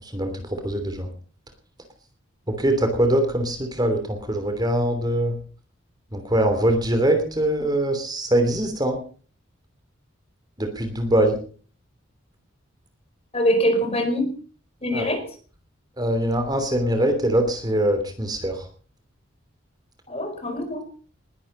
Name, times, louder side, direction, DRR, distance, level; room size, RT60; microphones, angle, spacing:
voice 1, 0.1-1.1 2.5-5.4 6.1-9.0 10.6-11.4 14.9-15.1 16.0-18.6, right 1 dB, 20° right, 6 dB, 3.0 m, -22 dB
voice 2, 13.3-14.3 14.8-15.2 20.1-20.8, equal, 30° left, 7 dB, 4.6 m, -23 dB
20.5 x 11.5 x 5.5 m, 0.42 s
head